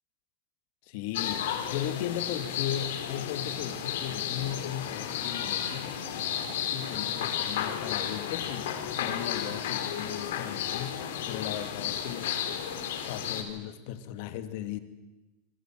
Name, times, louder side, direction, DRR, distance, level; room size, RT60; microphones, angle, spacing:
voice 1, 0.9-6.0 6.5-12.5 13.1-14.8, left 11 dB, 55° left, 8 dB, 2.5 m, -37 dB
sound 1, 1.1-13.4, left 9 dB, 85° left, 4.1 m, -33 dB
28.5 x 22.5 x 7.8 m, 1.1 s
supercardioid pair, 155°, 0 cm